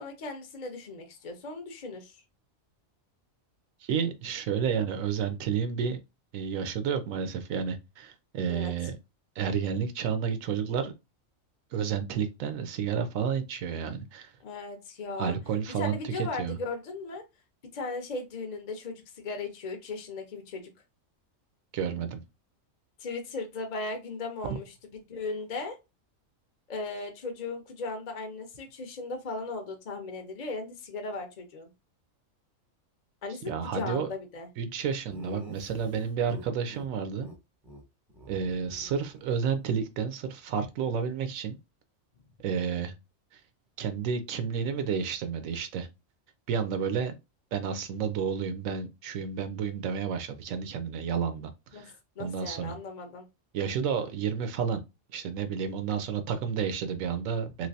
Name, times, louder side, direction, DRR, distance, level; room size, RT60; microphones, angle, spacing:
voice 1, 0.0-2.2 8.5-8.7 14.4-15.4 15.8-17.2 17.7-20.7 23.0-25.8 26.7-31.7 33.2-34.5 51.7-51.9 52.2-53.3, left 3 dB, 45° left, 0.6 m, -37 dB
voice 2, 3.8-6.0 6.3-9.0 9.4-10.9 11.7-14.3 15.2-16.6 21.7-22.2 33.5-34.1 34.6-37.3 38.3-41.6 42.4-42.9 43.8-45.9 46.5-47.2 47.5-51.9 52.2-52.8 53.5-54.8 55.1-57.7, right 7 dB, 80° right, 1.0 m, -31 dB
Laughter, 35.1-36.9 37.2-37.4 37.6-37.8 38.1-39.7, right 1 dB, ahead, 0.7 m, -47 dB
3.2 x 2.9 x 2.6 m
omnidirectional pair, 1.4 m